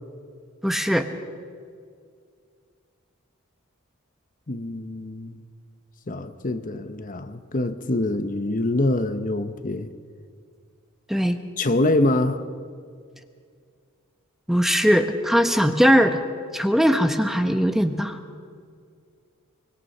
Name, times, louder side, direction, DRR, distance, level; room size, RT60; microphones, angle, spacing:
voice 1, 0.6-1.1 11.1-11.4 14.5-16.2 16.5-18.2, equal, ahead, 0.9 m, -20 dB
voice 2, 4.5-5.4 6.1-9.9 11.6-12.4, left 2 dB, 40° left, 1.0 m, -25 dB
24.0 x 23.5 x 5.6 m
head